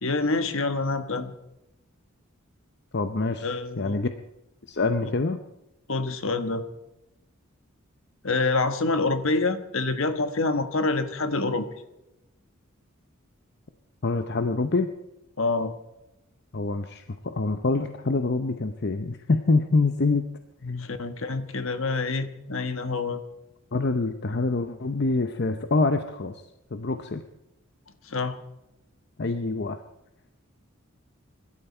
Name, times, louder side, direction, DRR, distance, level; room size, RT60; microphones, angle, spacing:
voice 1, 0.0-1.3 3.4-4.0 5.0-5.1 5.9-6.6 8.2-11.7 15.4-15.7 20.8-23.2 28.1-28.4, left 3 dB, 65° left, 9 dB, 1.4 m, -26 dB
voice 2, 2.9-4.1 4.7-5.4 14.0-14.9 16.5-20.2 20.6-20.9 23.7-26.4 26.7-27.2 29.2-29.8, left 3 dB, 50° left, 8 dB, 0.7 m, -26 dB
24.0 x 12.5 x 4.4 m, 0.92 s
head